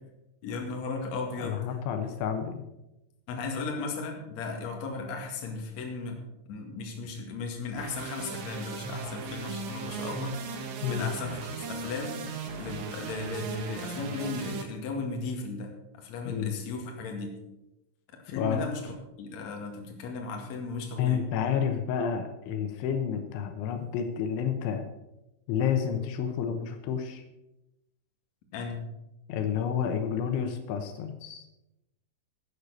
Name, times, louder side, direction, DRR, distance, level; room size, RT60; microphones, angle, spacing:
voice 1, 0.4-1.8 3.3-6.2 6.5-12.2 12.6-17.3 18.2-21.2 28.5-28.8, left 3 dB, 45° left, 2 dB, 2.7 m, -36 dB
voice 2, 1.4-2.6 10.8-11.1 16.3-16.5 18.4-18.6 21.0-24.8 25.5-27.2 29.3-31.5, left 8 dB, 80° left, 6 dB, 3.3 m, -30 dB
sound 1, 7.8-14.6, right 5 dB, 70° right, 3.6 m, -37 dB
13.0 x 8.4 x 6.6 m, 0.94 s
omnidirectional pair, 5.5 m